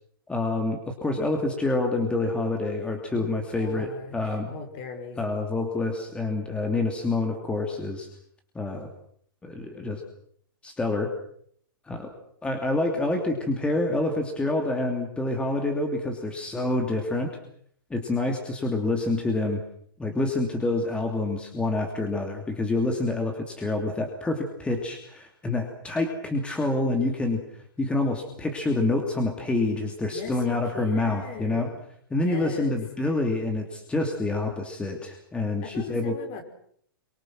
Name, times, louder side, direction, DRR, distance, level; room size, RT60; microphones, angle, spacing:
voice 1, 0.3-4.5 5.2-8.1 8.5-8.9 9.4-10.0 10.6-11.1 11.9-12.1 12.4-17.4 17.9-19.6 20.0-27.4 27.8-31.7 32.1-36.2, left 2 dB, 10° left, 3 dB, 2.8 m, -27 dB
voice 2, 3.2-5.5 30.1-31.8 32.1-32.8 35.6-36.4, left 5 dB, 40° left, 4 dB, 5.7 m, -39 dB
26.5 x 24.5 x 6.2 m, 0.65 s
hypercardioid pair, 130°, 12 cm